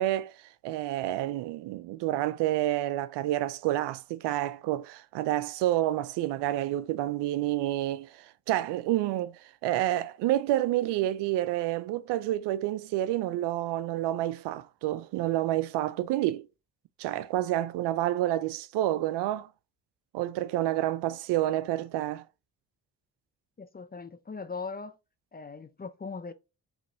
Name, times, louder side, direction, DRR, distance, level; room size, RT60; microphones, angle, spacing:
voice 1, 0.0-16.5 17.0-19.5 20.1-22.2, right 14 dB, 75° right, 0.5 m, -29 dB
voice 2, 23.6-25.0 25.3-26.3, left 4 dB, 20° left, 0.6 m, -39 dB
5.2 x 3.0 x 2.6 m
hypercardioid pair, 45°, 42 cm